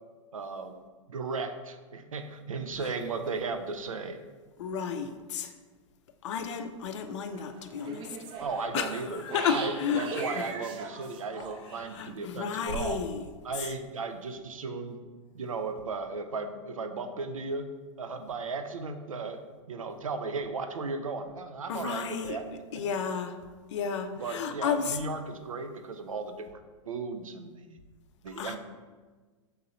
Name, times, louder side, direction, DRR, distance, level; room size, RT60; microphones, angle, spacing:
voice 1, 0.3-0.8 1.1-4.2 8.4-9.2 9.5-13.0 13.4-15.0 15.3-17.7 18.0-19.4 19.7-22.4 22.7-22.8 24.2-27.8 28.2-28.6, right 4 dB, 90° right, 7 dB, 0.4 m, -35 dB
voice 2, 4.6-5.5 6.2-8.1 8.7-10.4 11.9-13.2 21.7-22.4 22.7-23.4 23.7-25.0 28.3-28.6, left 6 dB, 65° left, 8 dB, 0.4 m, -32 dB
sound 1, 7.3-11.8, right 4 dB, 30° right, 0.5 m, -40 dB
3.8 x 2.7 x 4.2 m, 1.4 s
hypercardioid pair, 105°, 17 cm